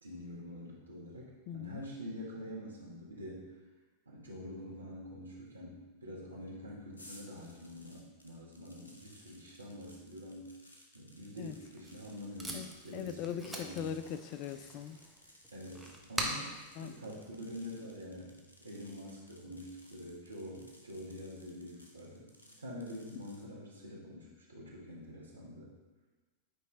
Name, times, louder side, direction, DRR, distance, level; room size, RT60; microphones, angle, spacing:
voice 1, 0.0-3.6 4.0-10.5 10.9-13.9 15.5-18.3 18.6-25.7, equal, 80° right, -4 dB, 1.6 m, -46 dB
voice 2, 1.5-1.8 11.4-11.6 12.5-15.0 16.8-16.9, left 9 dB, 45° left, 11 dB, 0.4 m, -40 dB
sound 1, 6.9-23.5, left 1 dB, 75° left, 1.0 m, -60 dB
Packing tape duct tape, 11.5-17.9, equal, ahead, 0.9 m, -44 dB
9.2 x 3.2 x 3.9 m, 1.2 s
figure-of-eight pair, 90°, 0 cm